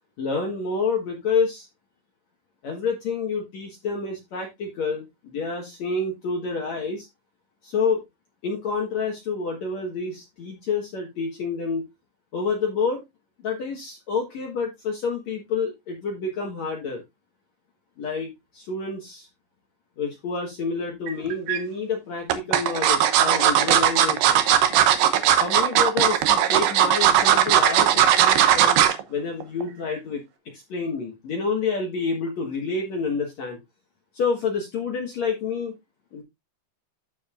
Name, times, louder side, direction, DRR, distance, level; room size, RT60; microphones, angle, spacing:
voice 1, 0.2-1.7 2.6-7.1 7.6-8.0 8.4-11.8 12.3-13.0 13.4-17.0 18.0-19.3 20.0-24.5 25.4-28.8 29.1-30.2 30.5-33.6 34.1-35.7 36.1-36.2, left 4 dB, 60° left, 1 dB, 1.9 m, -28 dB
sound 1, 21.1-21.6 22.3-29.0 29.4-29.6 29.9-30.0, right 10 dB, 70° right, 2.1 m, -18 dB
14.0 x 5.2 x 2.4 m, 0.19 s
omnidirectional pair, 4.9 m